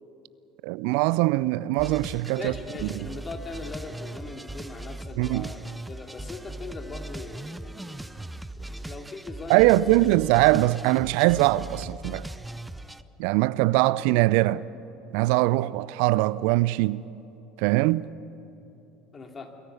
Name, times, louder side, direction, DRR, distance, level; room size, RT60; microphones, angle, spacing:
voice 1, 0.6-2.5 5.2-5.5 9.5-12.3 13.2-14.6 15.1-17.0 17.6-18.1, right 18 dB, 65° right, 0.4 m, -22 dB
sound 1, 1.8-13.0, right 1 dB, 10° right, 0.7 m, -39 dB
voice 2, 2.4-8.1 8.6-10.0 19.1-19.5, left 3 dB, 30° left, 2.7 m, -40 dB
23.0 x 14.5 x 9.7 m
hypercardioid pair, 70°, 0 cm